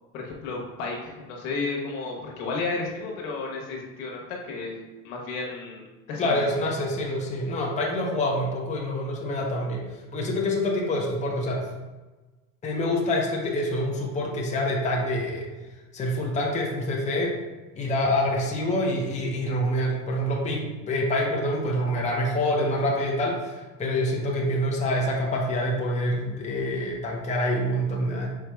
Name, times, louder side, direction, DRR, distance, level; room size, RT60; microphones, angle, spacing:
voice 1, 0.1-4.7 5.0-5.8 6.1-6.3, left 3 dB, 75° left, -1 dB, 1.2 m, -32 dB
voice 2, 6.2-9.9 10.1-11.6 12.6-15.4 15.9-17.3 17.7-28.3, left 1 dB, 20° left, -2 dB, 0.8 m, -26 dB
4.8 x 4.2 x 2.3 m, 1.2 s
supercardioid pair, 115°, 39 cm